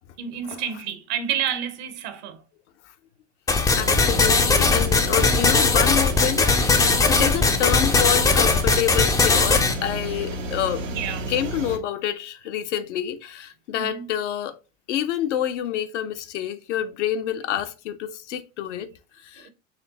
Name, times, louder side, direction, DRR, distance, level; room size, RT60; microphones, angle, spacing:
voice 1, 0.2-2.4 10.9-11.3 13.7-14.1 19.4-19.5, right 9 dB, 55° right, 0.9 m, -30 dB
sound 1, 3.5-9.7, left 4 dB, 10° left, 0.4 m, -19 dB
voice 2, 3.8-10.9 11.3-14.6 14.9-18.9 19.2-19.5, left 10 dB, 65° left, 0.7 m, -28 dB
sound 2, 3.8-11.8, right 1 dB, 80° right, 0.9 m, -31 dB
4.2 x 3.2 x 2.8 m
hypercardioid pair, 90°, 38 cm